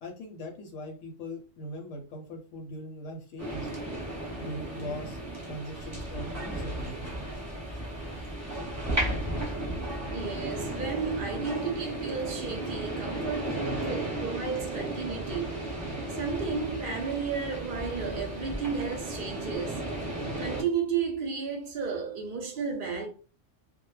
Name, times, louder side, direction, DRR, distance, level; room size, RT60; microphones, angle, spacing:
voice 1, 0.0-3.7 4.4-5.2 5.5-7.1, left 1 dB, 75° left, 0.9 m, -40 dB
sound 1, 3.4-20.6, right 1 dB, 15° right, 0.9 m, -34 dB
voice 2, 10.1-15.7 16.1-19.9 20.4-23.1, right 5 dB, 60° right, 0.6 m, -33 dB
2.1 x 2.0 x 3.0 m
omnidirectional pair, 1.3 m